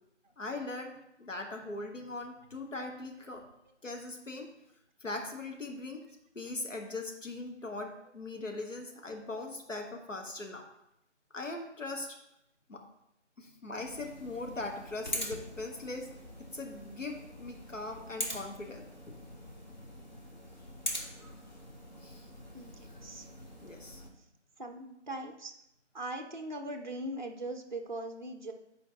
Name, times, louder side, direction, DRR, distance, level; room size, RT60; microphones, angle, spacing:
voice 1, 0.4-3.4 3.8-4.5 5.0-6.0 6.3-10.7 11.3-12.2 12.7-12.8 13.4-16.1 16.5-19.1 21.0-21.4 22.0-22.3 23.6-24.0, left 2 dB, 90° left, 2 dB, 1.2 m, -40 dB
sound 1, 13.8-24.1, equal, 35° left, 0.9 m, -43 dB
voice 2, 22.5-23.3 24.6-25.5 25.9-28.5, right 1 dB, 40° right, 4 dB, 0.4 m, -40 dB
7.6 x 4.5 x 2.7 m, 0.81 s
figure-of-eight pair, 165°, 37 cm